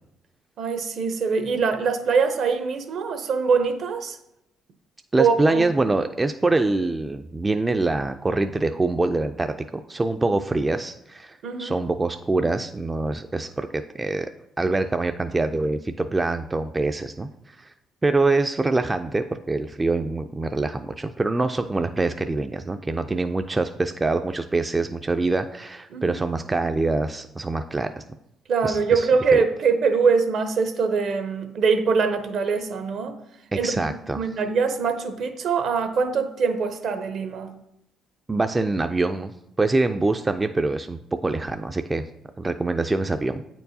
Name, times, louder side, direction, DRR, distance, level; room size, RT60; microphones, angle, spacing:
voice 1, 0.6-4.2 5.2-5.6 11.4-11.8 25.9-26.2 28.5-33.2 33.5-33.8 34.1-37.5, right 5 dB, 65° right, 0.7 m, -23 dB
voice 2, 5.1-13.7 14.0-14.3 14.6-17.7 18.0-28.0 28.6-29.1 29.3-29.4 33.5-34.2 38.3-42.0 42.4-43.4, right 3 dB, 20° right, 0.3 m, -24 dB
8.3 x 4.5 x 2.7 m
supercardioid pair, 75°, 0 cm